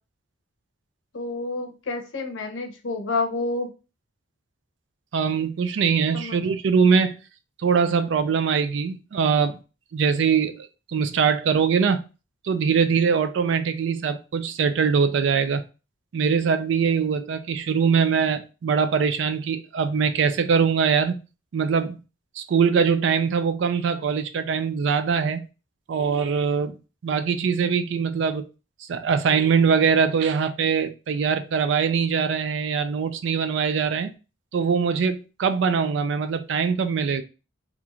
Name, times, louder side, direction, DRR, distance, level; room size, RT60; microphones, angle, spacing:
voice 1, 1.1-3.7 6.1-6.4, left 3 dB, 75° left, 0.6 m, -29 dB
voice 2, 5.1-7.1 7.6-9.6 9.9-12.0 12.4-15.6 16.1-21.2 21.5-22.0 22.4-25.5 25.9-26.7 27.0-28.4 28.9-34.1 34.5-37.2, right 6 dB, 65° right, 0.3 m, -22 dB
2.5 x 2.3 x 3.0 m
head